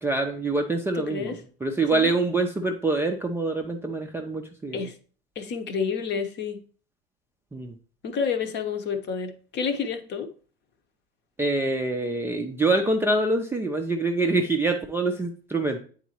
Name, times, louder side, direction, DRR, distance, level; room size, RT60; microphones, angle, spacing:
voice 1, 0.0-4.9 7.5-7.7 11.4-15.8, right 2 dB, 10° right, 0.4 m, -25 dB
voice 2, 0.9-1.4 1.9-2.1 4.7-4.9 5.4-6.6 8.0-10.3, left 6 dB, 35° left, 0.9 m, -29 dB
9.0 x 4.0 x 2.9 m
figure-of-eight pair, 80°, 31 cm